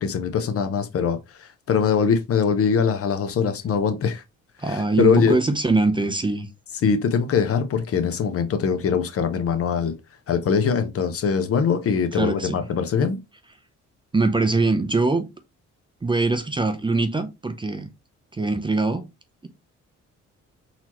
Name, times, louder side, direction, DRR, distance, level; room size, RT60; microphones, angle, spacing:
voice 1, 0.0-4.2 4.7-5.4 6.8-9.9 10.3-13.2, left 6 dB, 50° left, 0.7 m, -22 dB
voice 2, 4.6-6.5 12.1-12.6 14.1-15.3 16.0-17.9 18.3-19.0, right 3 dB, 15° right, 0.5 m, -22 dB
4.1 x 2.9 x 2.9 m
cardioid pair, 90°, 30 cm